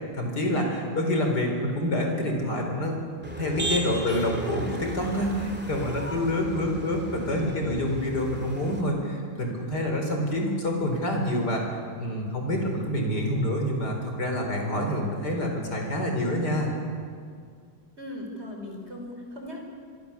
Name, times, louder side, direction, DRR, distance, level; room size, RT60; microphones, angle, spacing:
voice 1, 0.1-3.0 3.4-16.7, left 1 dB, 55° left, 2 dB, 4.9 m, -27 dB
Motor vehicle (road), 3.2-8.8, right 1 dB, 5° right, 2.5 m, -36 dB
voice 2, 7.2-7.7 9.3-9.5 18.0-19.6, left 1 dB, 30° right, 1 dB, 5.0 m, -39 dB
26.0 x 23.0 x 7.2 m, 2.2 s
omnidirectional pair, 2.2 m